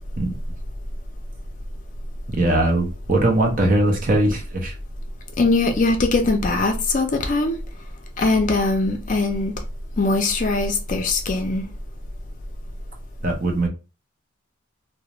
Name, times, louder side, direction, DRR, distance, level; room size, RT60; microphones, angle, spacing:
voice 1, 2.3-4.7 13.2-13.7, right 1 dB, 40° right, 0.6 m, -20 dB
voice 2, 5.4-7.6 8.2-9.5 10.0-11.6, left 3 dB, 40° left, 0.4 m, -21 dB
2.4 x 2.0 x 2.9 m
head